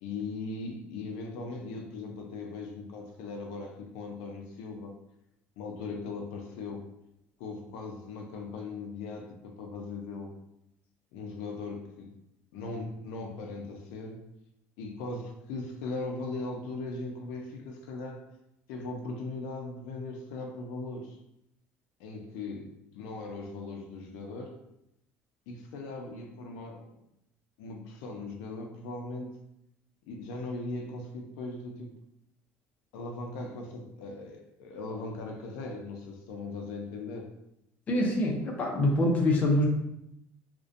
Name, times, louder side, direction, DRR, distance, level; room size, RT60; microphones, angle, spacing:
voice 1, 0.0-4.9 5.6-6.8 7.4-10.3 11.1-12.1 12.5-14.3 14.8-18.3 18.7-21.2 22.0-24.6 25.5-26.9 27.6-29.3 30.0-31.9 32.9-37.3, left 3 dB, 85° left, 2 dB, 0.4 m, -39 dB
voice 2, 37.9-39.7, left 1 dB, 30° left, -1 dB, 0.5 m, -25 dB
2.5 x 2.1 x 2.4 m, 0.82 s
cardioid pair, 145°, 5 cm